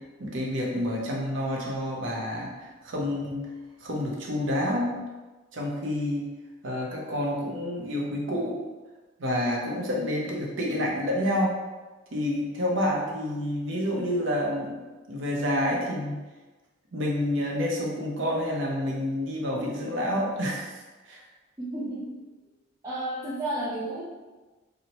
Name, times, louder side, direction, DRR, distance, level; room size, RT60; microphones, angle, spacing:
voice 1, 0.0-3.5 3.8-5.0 5.5-6.3 6.6-8.6 9.2-11.6 12.1-14.8 15.1-16.2 16.9-21.2, left 1 dB, 65° right, -3 dB, 0.6 m, -29 dB
voice 2, 21.6-22.2 22.8-24.0, right 1 dB, 20° right, -10 dB, 0.4 m, -32 dB
2.8 x 2.0 x 2.9 m, 1.2 s
head